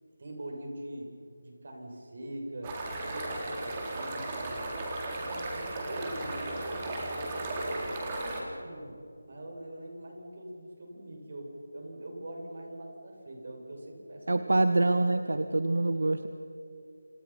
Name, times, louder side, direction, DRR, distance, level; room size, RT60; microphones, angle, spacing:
voice 1, 0.2-1.1 1.4-2.8 3.1-4.7 5.1-9.0 9.3-14.9, right 1 dB, 50° right, 1 dB, 7.1 m, -43 dB
sound 1, 2.6-8.4, right 2 dB, 20° right, 3.7 m, -35 dB
voice 2, 14.3-16.3, right 2 dB, 75° right, 9 dB, 1.5 m, -25 dB
29.0 x 27.0 x 5.9 m, 2.7 s
figure-of-eight pair, 170°, 0 cm